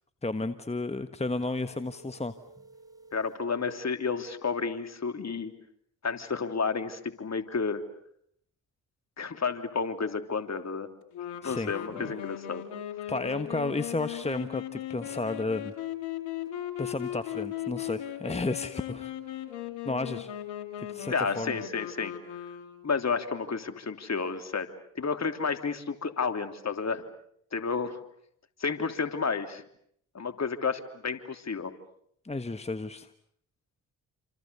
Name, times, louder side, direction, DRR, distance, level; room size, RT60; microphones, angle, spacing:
voice 1, 0.2-2.3 11.4-12.1 13.1-15.7 16.8-19.1 19.8-20.3 20.9-21.6 32.2-33.1, left 2 dB, 15° left, 11 dB, 1.4 m, -32 dB
sound 1, 1.4-3.5, right 2 dB, 10° right, 4.8 m, -53 dB
voice 2, 3.1-5.5 6.0-7.8 9.2-10.9 11.4-12.6 21.1-22.1 22.8-24.7 24.9-27.0 27.5-28.0 28.6-29.6 30.1-31.7, left 5 dB, 40° left, 8 dB, 3.2 m, -31 dB
sound 2, 11.1-23.0, left 12 dB, 75° left, 2.7 m, -38 dB
28.5 x 27.0 x 7.0 m, 0.69 s
hypercardioid pair, 45°, 40 cm